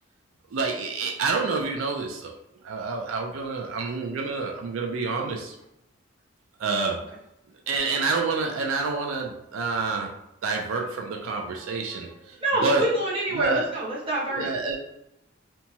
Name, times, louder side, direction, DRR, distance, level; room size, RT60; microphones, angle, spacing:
voice 1, 0.5-2.3 2.6-5.5 6.6-7.0 7.7-10.1 10.4-12.3 12.6-12.8 13.4-13.7 14.3-14.8, right 4 dB, 80° right, 1 dB, 0.4 m, -28 dB
voice 2, 12.4-14.5, right 1 dB, 25° right, -5 dB, 0.8 m, -26 dB
2.8 x 2.2 x 2.7 m, 0.84 s
head